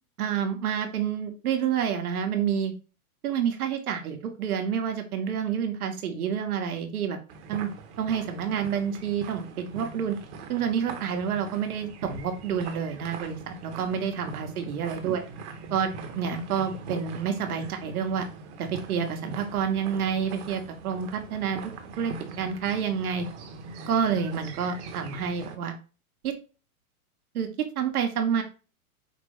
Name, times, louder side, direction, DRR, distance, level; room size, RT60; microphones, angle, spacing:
voice 1, 0.2-2.7 3.2-7.2 7.5-7.7 8.0-10.2 10.5-15.2 15.7-15.9 16.1-18.3 18.6-21.6 22.0-23.3 23.9-25.7 26.2-26.3 27.3-27.5 27.8-28.4, right 7 dB, 85° right, 5 dB, 1.3 m, -28 dB
sound 1, 7.3-25.6, right 4 dB, 50° right, 1.1 m, -42 dB
5.2 x 2.1 x 4.8 m, 0.33 s
hypercardioid pair, 140°, 44 cm